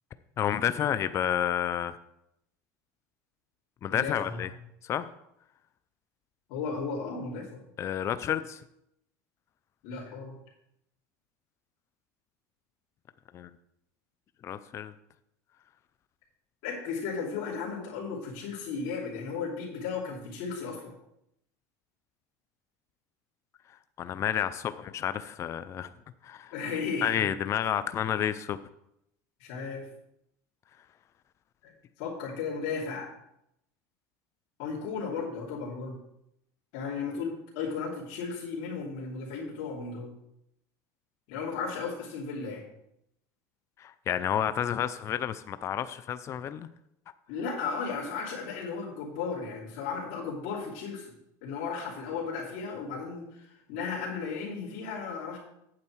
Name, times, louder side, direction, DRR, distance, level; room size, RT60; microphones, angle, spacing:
voice 1, 0.4-2.0 3.8-4.5 4.8-5.1 7.8-8.6 13.3-13.5 14.4-14.9 24.0-25.9 26.2-26.5 27.0-28.6 43.8-46.7, left 10 dB, 30° left, 13 dB, 0.4 m, -30 dB
voice 2, 3.9-4.5 6.5-7.6 9.8-10.3 16.6-20.9 26.5-27.3 29.4-29.9 31.6-31.7 32.0-33.1 34.6-36.0 36.7-40.1 41.3-42.6 47.3-51.1 51.4-55.4, left 5 dB, 65° left, -6 dB, 2.9 m, -35 dB
8.7 x 7.8 x 4.6 m, 0.80 s
supercardioid pair, 125°, 9 cm